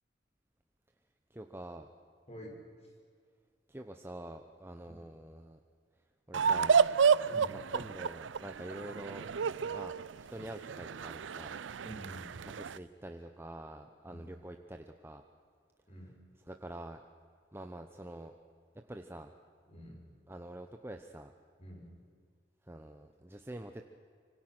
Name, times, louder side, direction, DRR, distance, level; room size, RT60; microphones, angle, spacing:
voice 1, 1.3-1.9 3.7-5.6 6.3-6.8 7.5-10.0 10.3-11.6 12.4-15.2 16.5-17.0 17.5-18.3 18.9-19.3 20.3-21.3 22.6-23.8, right 1 dB, 15° right, 5 dB, 0.9 m, -46 dB
sound 1, 6.3-12.8, right 6 dB, 90° right, 0.5 m, -30 dB
voice 2, 7.2-7.6 11.8-12.3 14.0-14.2 15.9-16.1 19.7-20.0 21.6-21.9, equal, 35° left, 0 dB, 6.0 m, -48 dB
26.0 x 24.5 x 6.1 m, 2.1 s
head